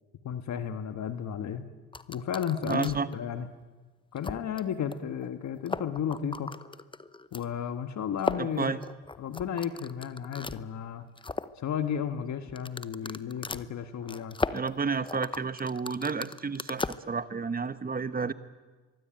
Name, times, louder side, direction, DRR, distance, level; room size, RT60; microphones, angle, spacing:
voice 1, 0.2-1.6 2.1-3.5 4.1-6.5 7.3-8.8 9.2-11.0 11.6-14.4, left 8 dB, 65° left, 9 dB, 1.6 m, -33 dB
sound 1, 1.9-3.1 3.6-3.7 4.2-4.6 4.9-5.0 5.2-5.3 5.6-7.4 8.2-10.6 11.0-11.6 12.5-17.0, left 3 dB, 15° left, 0.8 m, -36 dB
voice 2, 2.7-3.1 8.4-8.8 14.5-18.3, right 5 dB, 30° right, 13 dB, 1.3 m, -31 dB
23.5 x 23.5 x 8.9 m, 1.3 s
cardioid pair, 90°, 30 cm